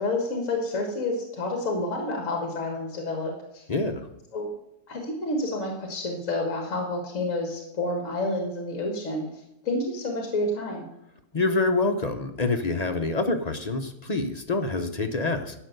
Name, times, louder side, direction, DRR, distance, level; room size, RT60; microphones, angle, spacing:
voice 1, 0.0-3.6 4.3-4.5 4.9-9.3 9.6-10.9, left 2 dB, 55° left, 2 dB, 1.9 m, -29 dB
voice 2, 3.7-4.1 11.3-15.5, left 3 dB, 40° left, 5 dB, 0.6 m, -26 dB
11.5 x 5.4 x 7.9 m, 0.83 s
omnidirectional pair, 1.6 m